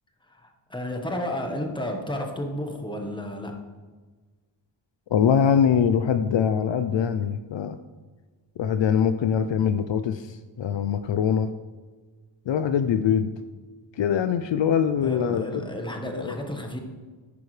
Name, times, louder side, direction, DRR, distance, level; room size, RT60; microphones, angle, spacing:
voice 1, 0.3-3.6 15.0-16.8, equal, 10° left, 3 dB, 1.2 m, -32 dB
voice 2, 5.1-7.8 8.6-11.5 12.5-13.3 14.0-15.6 16.2-16.4, left 8 dB, 65° left, 10 dB, 0.5 m, -23 dB
10.5 x 9.5 x 3.3 m, 1.4 s
wide cardioid pair, 125°, 48 cm